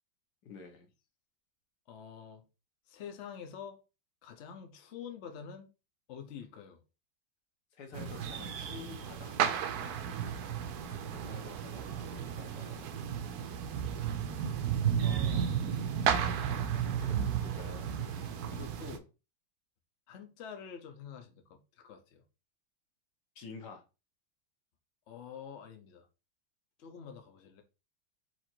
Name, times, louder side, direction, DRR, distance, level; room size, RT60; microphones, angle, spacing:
voice 1, 0.4-0.9 7.7-9.4 11.1-12.9 15.0-15.7 16.7-17.9 23.3-23.8, left 5 dB, 60° left, 1.4 m, -49 dB
voice 2, 1.9-2.4 2.9-3.8 4.2-5.7 6.1-6.8 9.8-10.0 14.8-14.9 18.1-19.1 20.1-22.2 25.1-26.1 26.8-27.6, left 7 dB, 80° left, 0.6 m, -47 dB
sound 1, 7.9-19.0, right 8 dB, 70° right, 1.0 m, -33 dB
4.5 x 2.5 x 4.3 m
omnidirectional pair, 2.2 m